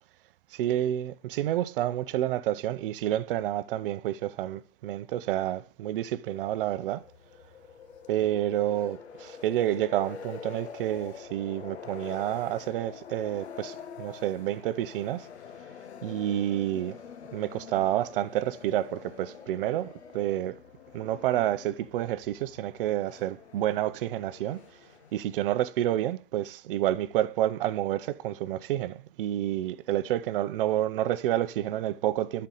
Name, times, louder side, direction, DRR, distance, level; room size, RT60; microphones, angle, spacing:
voice 1, 0.5-7.0 8.1-15.3 16.0-16.9 17.3-20.5 20.9-24.6 25.1-32.5, right 13 dB, 55° right, 0.6 m, -29 dB
sound 1, 6.3-25.3, left 7 dB, 85° left, 0.8 m, -46 dB
8.8 x 4.3 x 3.8 m
hypercardioid pair, 130°, 32 cm